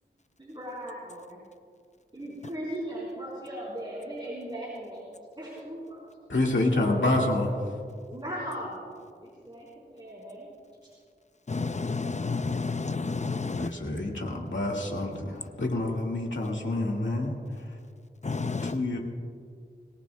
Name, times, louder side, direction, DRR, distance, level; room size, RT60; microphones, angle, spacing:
voice 1, 0.4-1.4 2.1-6.0 8.1-8.8 9.2-10.5, equal, 25° right, 4.0 m, -38 dB
voice 2, 6.3-7.5 13.6-15.2 15.6-17.3 18.6-19.0, left 2 dB, 85° left, 2.0 m, -27 dB
voice 3, 11.5-13.7 18.2-18.8, left 4 dB, 40° left, 0.6 m, -30 dB
23.5 x 18.0 x 2.3 m
wide cardioid pair, 50°, 19 cm